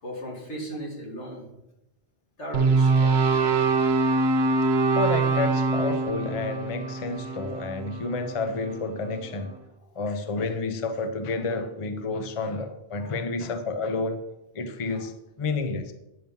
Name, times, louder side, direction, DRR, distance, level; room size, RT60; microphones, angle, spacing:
voice 1, 0.0-1.5 2.4-3.6 3.9-5.0 13.0-13.2 14.9-15.1, equal, 85° left, -3 dB, 2.9 m, -39 dB
sound 1, 2.5-8.8, right 3 dB, 65° right, 1.1 m, -24 dB
voice 2, 4.9-9.6 10.0-14.2 14.5-15.1 15.4-15.9, left 3 dB, 35° left, 8 dB, 0.7 m, -30 dB
9.4 x 6.1 x 5.4 m, 0.88 s
omnidirectional pair, 1.2 m